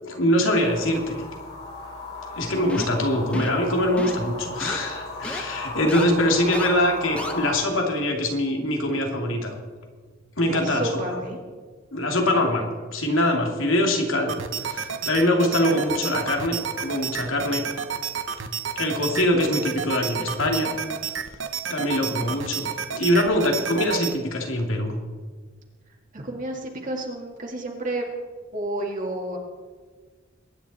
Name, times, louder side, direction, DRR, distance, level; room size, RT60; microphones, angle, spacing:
voice 1, 0.0-1.2 2.4-9.5 10.4-11.0 11.9-12.7 12.9-17.6 18.8-20.7 21.7-22.7 22.9-24.9, left 1 dB, 80° left, 2 dB, 2.7 m, -23 dB
sound 1, 0.6-7.5, left 2 dB, 55° left, 4.2 m, -36 dB
sound 2, 2.7-3.0 3.3-3.6 4.0-4.3 4.6-4.8 5.2-5.4 5.9-6.0 6.5-6.7 7.2-7.3, equal, 5° left, 1.0 m, -33 dB
voice 2, 10.5-11.4 15.4-15.8 26.1-28.1 28.5-29.4, right 1 dB, 40° right, 0 dB, 2.1 m, -31 dB
sound 3, 14.3-24.1, right 7 dB, 70° right, 0.9 m, -31 dB
22.5 x 10.0 x 4.3 m, 1.5 s
head